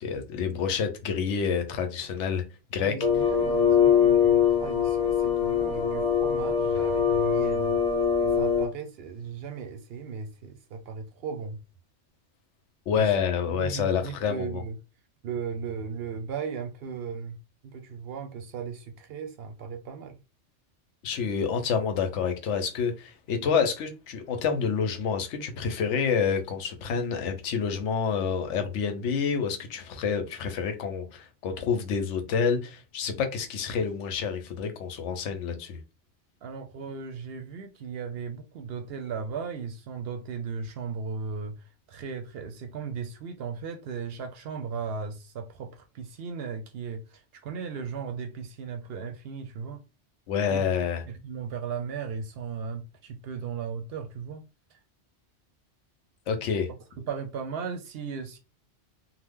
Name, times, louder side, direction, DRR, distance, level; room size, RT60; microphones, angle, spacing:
voice 1, 0.0-2.4 2.7-2.9 12.9-14.6 21.0-35.8 50.3-51.0 56.3-56.7, left 6 dB, 80° left, 1.0 m, -28 dB
voice 2, 2.8-7.8 8.2-11.6 13.0-13.1 13.5-14.7 15.2-17.4 17.7-20.2 36.4-41.6 41.9-49.8 50.5-50.6 51.1-54.4 57.0-58.4, right 6 dB, 65° right, 0.7 m, -36 dB
sound 1, 3.0-8.7, left 7 dB, 40° left, 0.9 m, -23 dB
2.8 x 2.0 x 3.5 m
omnidirectional pair, 1.2 m